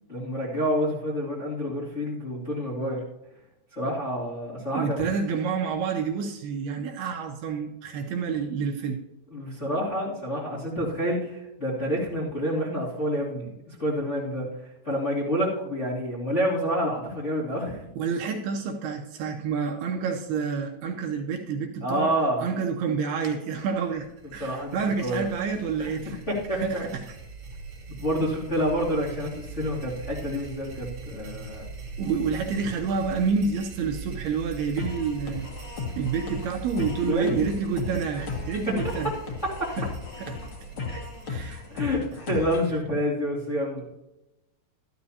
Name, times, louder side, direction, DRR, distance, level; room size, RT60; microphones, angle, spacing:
voice 1, 0.1-3.0 3.8-5.0 9.3-14.5 14.8-17.8 21.8-22.4 24.4-25.3 25.8-25.9 26.3-26.8 28.0-31.6 37.1-37.3 39.4-39.7 41.7-43.9, equal, 20° left, -8 dB, 2.1 m, -28 dB
voice 2, 4.7-9.0 18.0-22.1 22.4-26.2 26.6-26.9 32.0-35.5 36.0-39.1 39.8-39.9 40.2-40.3 40.9-41.6, right 5 dB, 75° right, 2 dB, 2.7 m, -28 dB
sound 1, 23.6-42.7, right 4 dB, 45° right, 2.7 m, -42 dB
sound 2, 34.8-42.8, left 4 dB, 60° left, 1.4 m, -35 dB
13.5 x 12.5 x 2.8 m, 0.95 s
omnidirectional pair, 4.9 m